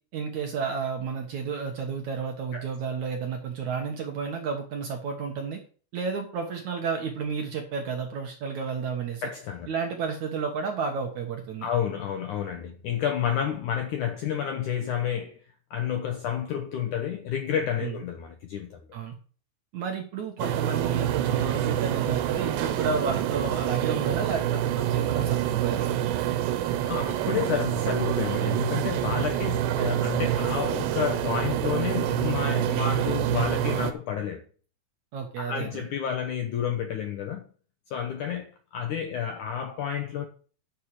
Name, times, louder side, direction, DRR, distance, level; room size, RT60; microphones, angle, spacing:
voice 1, 0.1-5.6 5.9-9.2 9.7-11.7 17.8-17.9 18.9-19.1 19.7-25.9 35.1-35.8, right 5 dB, 60° right, 2.1 m, -31 dB
voice 2, 9.2-9.7 11.6-15.4 15.7-18.8 26.8-34.4 35.4-37.5 37.9-40.3, left 9 dB, 75° left, 1.9 m, -30 dB
sound 1, 20.4-33.9, right 11 dB, 90° right, 3.1 m, -27 dB
11.5 x 6.6 x 4.8 m
omnidirectional pair, 4.8 m